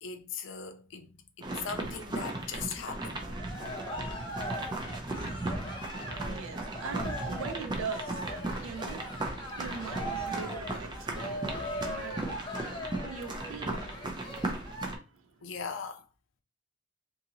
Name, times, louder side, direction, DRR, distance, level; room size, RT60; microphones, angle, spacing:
voice 1, 0.0-3.2 10.3-10.5 11.2-11.3 15.4-16.1, left 6 dB, 70° left, 0.5 m, -40 dB
sound 1, 1.4-15.0, right 2 dB, 20° right, 0.5 m, -37 dB
Cheering, 3.1-14.9, equal, 25° left, 0.6 m, -40 dB
voice 2, 5.2-8.2 8.6-9.1 9.4-15.5, right 5 dB, 85° right, 0.4 m, -43 dB
2.7 x 2.6 x 2.7 m
head